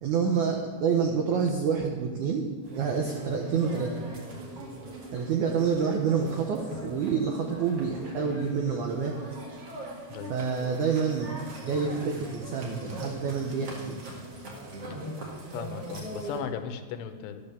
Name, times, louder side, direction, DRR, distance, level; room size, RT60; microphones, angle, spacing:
voice 1, 0.0-2.4 2.7-4.0 5.1-9.1 10.3-11.3 11.7-14.0, right 6 dB, 80° right, 2 dB, 1.7 m, -28 dB
sound 1, 2.6-16.4, right 1 dB, 45° right, 2.4 m, -41 dB
voice 2, 15.5-17.4, left 8 dB, 85° left, 9 dB, 2.9 m, -37 dB
12.0 x 8.7 x 6.9 m, 1.5 s
omnidirectional pair, 4.8 m